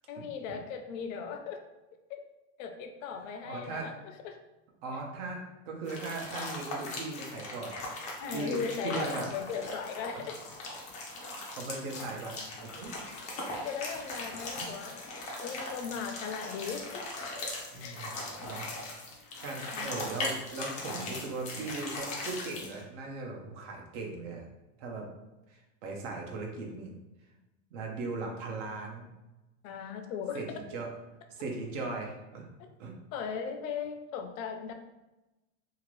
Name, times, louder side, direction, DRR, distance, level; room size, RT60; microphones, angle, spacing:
voice 1, 0.1-1.6 2.1-2.2 2.6-4.4 8.2-10.4 13.6-15.1 15.4-17.1 17.8-18.0 19.7-20.0 29.6-30.4 32.6-32.7 33.1-34.7, left 6 dB, 90° left, 6 dB, 0.6 m, -38 dB
voice 2, 3.1-3.9 4.8-8.0 8.3-8.6 8.8-9.3 9.7-9.8 10.1-10.3 11.2-12.3 12.6-13.0 14.2-14.3 14.6-14.7 17.7-18.7 19.4-24.4 24.8-25.1 25.5-26.9 27.7-29.1 30.3-30.5 30.7-30.9 31.3-32.4 32.8-32.9, right 3 dB, 65° right, 1 dB, 0.9 m, -38 dB
sound 1, 5.9-22.8, left 2 dB, 20° left, 0.3 m, -39 dB
2.8 x 2.5 x 3.0 m, 1.0 s
supercardioid pair, 160°, 38 cm